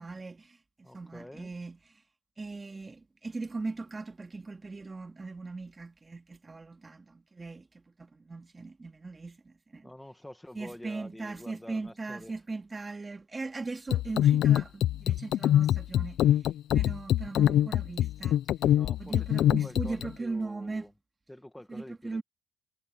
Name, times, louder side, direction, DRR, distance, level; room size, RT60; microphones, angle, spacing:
voice 1, 0.0-1.8 2.4-9.9 10.5-18.4 19.0-20.9 21.7-22.2, right 3 dB, 25° right, 2.7 m, -39 dB
voice 2, 0.8-1.5 9.8-12.3 18.7-20.9 21.3-22.2, left 1 dB, 5° left, 1.9 m, -47 dB
sound 1, 13.9-20.1, left 12 dB, 80° left, 0.5 m, -24 dB
cardioid pair, 90°, 0 cm